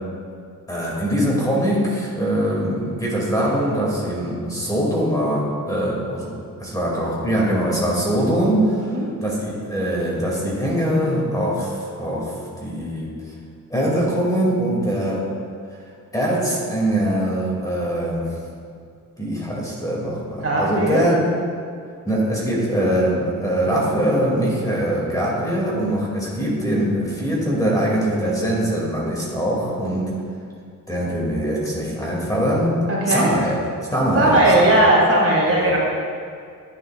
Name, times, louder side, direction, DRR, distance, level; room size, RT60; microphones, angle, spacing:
voice 1, 0.7-6.3 6.6-8.9 9.2-12.3 12.6-13.1 13.7-15.2 16.1-18.3 19.2-21.2 22.0-30.1 30.9-32.7 33.1-33.6 33.9-34.9 35.4-35.7, equal, 10° left, -5 dB, 2.3 m, -22 dB
voice 2, 20.4-21.1 32.9-33.3 34.2-35.8, right 1 dB, 40° right, -4 dB, 2.1 m, -17 dB
11.0 x 9.4 x 2.4 m, 2.2 s
cardioid pair, 110°, 35 cm